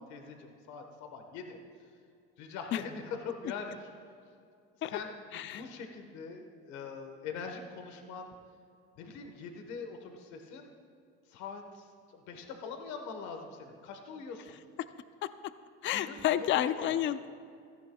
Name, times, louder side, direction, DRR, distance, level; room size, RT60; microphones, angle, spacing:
voice 1, 0.0-1.9 2.4-3.9 4.9-8.3 9.0-10.7 11.3-14.6 15.9-16.9, left 5 dB, 70° left, 4 dB, 1.4 m, -43 dB
voice 2, 15.2-15.5 15.8-17.3, left 11 dB, 40° left, 13 dB, 0.4 m, -30 dB
16.5 x 14.0 x 2.3 m, 2.3 s
supercardioid pair, 105°, 30 cm